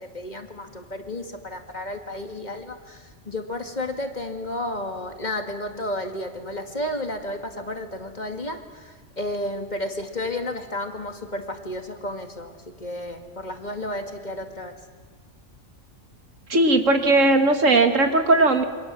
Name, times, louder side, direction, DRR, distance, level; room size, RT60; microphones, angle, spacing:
voice 1, 0.0-14.7, left 1 dB, 35° left, 5 dB, 2.2 m, -32 dB
voice 2, 16.5-18.6, right 2 dB, 85° right, 6 dB, 2.3 m, -18 dB
28.5 x 24.5 x 7.6 m, 1.5 s
omnidirectional pair, 1.3 m